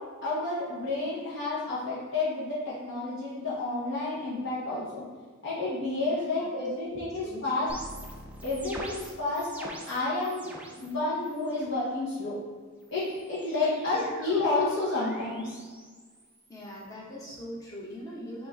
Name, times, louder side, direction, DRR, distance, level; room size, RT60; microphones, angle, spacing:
voice 1, 0.2-5.0 5.4-7.7 8.4-12.4 12.9-15.6, left 2 dB, 55° left, -8 dB, 1.0 m, -30 dB
voice 2, 6.1-6.5 6.9-7.5 13.6-13.7 13.9-14.1 16.5-18.5, equal, 15° left, -6 dB, 1.0 m, -42 dB
sound 1, 7.7-10.9 11.2-11.8 12.8-16.9, right 1 dB, 5° right, 0.4 m, -45 dB
5.8 x 2.6 x 3.5 m, 1.5 s
head